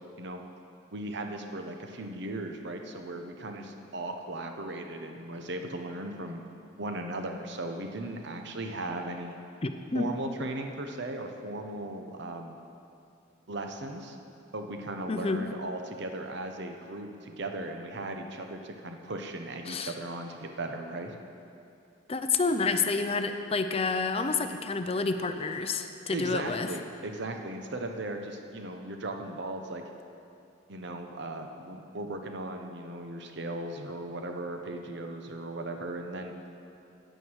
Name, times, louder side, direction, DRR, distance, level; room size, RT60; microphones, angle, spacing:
voice 1, 0.9-6.4 6.8-9.4 9.9-12.6 13.5-14.2 14.5-21.2 26.1-29.8 30.7-36.3, right 2 dB, 60° right, 4 dB, 0.9 m, -37 dB
voice 2, 9.6-10.1 15.1-15.5 19.7-19.9 22.1-26.7, left 4 dB, 30° left, 8 dB, 0.5 m, -29 dB
9.3 x 9.0 x 6.4 m, 2.6 s
head